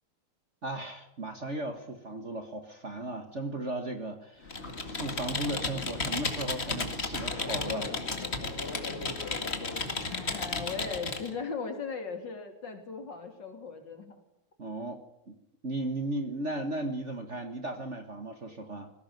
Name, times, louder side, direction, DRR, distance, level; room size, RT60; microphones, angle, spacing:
voice 1, 0.6-8.0 14.6-15.0 15.3-15.4 15.6-18.9, right 2 dB, 35° right, 7 dB, 1.7 m, -36 dB
Computer keyboard, 4.5-11.3, left 3 dB, 30° left, 2.2 m, -33 dB
voice 2, 10.0-14.2, left 5 dB, 55° left, 6 dB, 3.5 m, -38 dB
20.0 x 17.0 x 9.3 m, 0.82 s
omnidirectional pair, 2.4 m